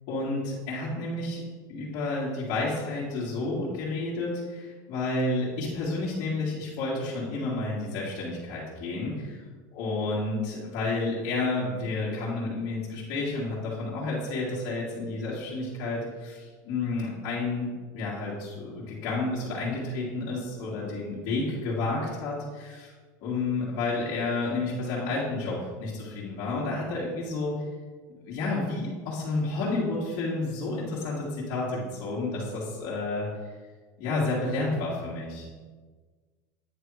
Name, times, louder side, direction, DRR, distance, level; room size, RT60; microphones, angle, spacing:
voice 1, 0.1-1.4 1.7-9.4 9.7-17.7 17.9-22.9 23.2-27.6 28.2-33.3 34.0-35.5, left 2 dB, 55° left, -9 dB, 1.9 m, -30 dB
9.3 x 3.4 x 4.7 m, 1.4 s
supercardioid pair, 150°, 10 cm